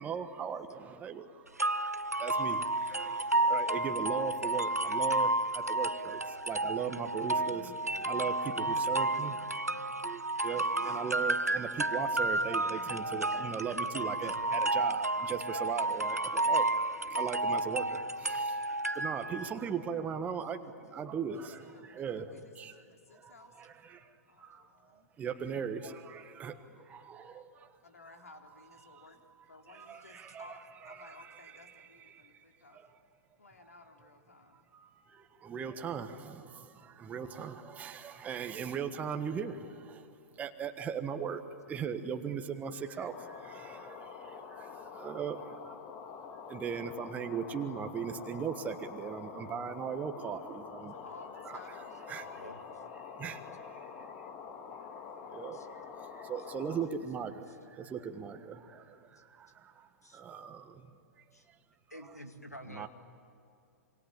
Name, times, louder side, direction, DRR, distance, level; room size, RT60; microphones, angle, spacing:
voice 1, 0.0-1.9 2.2-9.5 10.0-22.8 23.1-27.7 28.0-32.4 32.7-33.0 34.5-45.8 46.3-51.1 51.4-52.3 52.9-54.3 54.7-61.0 61.9-62.2 62.6-62.9, right 7 dB, 20° right, 6 dB, 1.5 m, -39 dB
sound 1, 1.6-19.5, right 2 dB, 90° right, 0.6 m, -31 dB
voice 2, 8.6-10.1 10.8-11.0 13.2-13.4 14.2-14.3 18.6-18.7 52.3-52.6 55.5-55.7 57.5-57.6 60.0-60.2 61.3-61.5 61.9-62.9, equal, 90° left, 7 dB, 2.3 m, -51 dB
voice 3, 21.3-23.5 24.3-25.1 27.8-29.2 29.5-32.8 33.4-34.7 42.9-43.4 50.9-52.4, left 3 dB, 70° left, 4 dB, 3.3 m, -55 dB
sound 2, 43.1-56.9, left 6 dB, 30° left, 2.0 m, -46 dB
26.5 x 24.5 x 8.8 m, 2.5 s
figure-of-eight pair, 110°, 8 cm